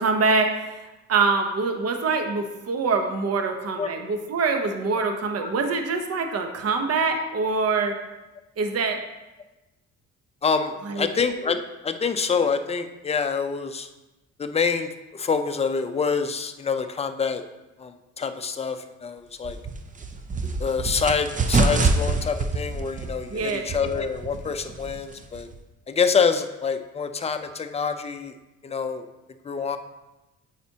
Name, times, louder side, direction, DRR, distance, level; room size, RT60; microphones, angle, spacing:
voice 1, 0.0-8.0 8.6-9.0 10.8-11.1 23.3-23.7, right 4 dB, 55° right, 5 dB, 0.9 m, -24 dB
voice 2, 10.4-11.6 11.8-13.9 14.4-17.4 17.8-19.6 20.6-25.5 25.9-28.3 28.6-29.1 29.4-29.8, left 5 dB, 20° left, 7 dB, 0.5 m, -26 dB
sound 1, 19.4-25.6, right 3 dB, 25° right, 0.5 m, -26 dB
8.8 x 4.2 x 2.8 m, 1.0 s
cardioid pair, 90°, 30 cm